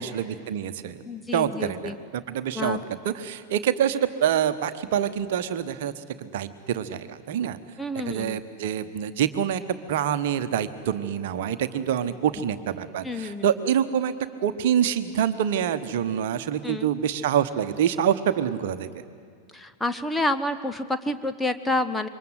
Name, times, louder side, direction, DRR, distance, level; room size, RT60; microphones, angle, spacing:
voice 1, 0.0-1.0 1.3-2.8 3.0-5.9 6.2-7.6 7.9-9.6 9.9-14.1 14.4-19.0, right 9 dB, 55° right, 10 dB, 1.2 m, -26 dB
voice 2, 1.1-2.0 2.5-2.8 7.8-8.4 13.0-13.5 16.6-16.9 19.5-22.1, left 2 dB, 5° left, 9 dB, 1.0 m, -28 dB
27.5 x 23.5 x 8.1 m, 2.2 s
figure-of-eight pair, 90°, 0 cm